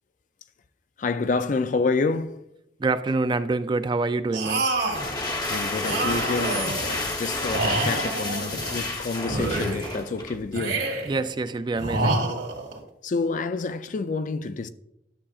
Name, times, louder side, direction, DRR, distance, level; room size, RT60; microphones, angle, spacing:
voice 1, 1.0-2.4 5.5-10.8 13.0-14.7, left 4 dB, 45° left, 0.4 m, -28 dB
voice 2, 2.8-4.7 11.0-12.2, right 3 dB, 25° right, 0.3 m, -26 dB
sound 1, 4.3-5.1 5.8-6.9 7.4-8.8 9.2-10.0 10.5-11.2 11.8-12.8, right 2 dB, 85° right, 1.9 m, -27 dB
sound 2, 4.7-10.5, left 2 dB, 25° left, 0.9 m, -30 dB
11.0 x 7.1 x 2.4 m
head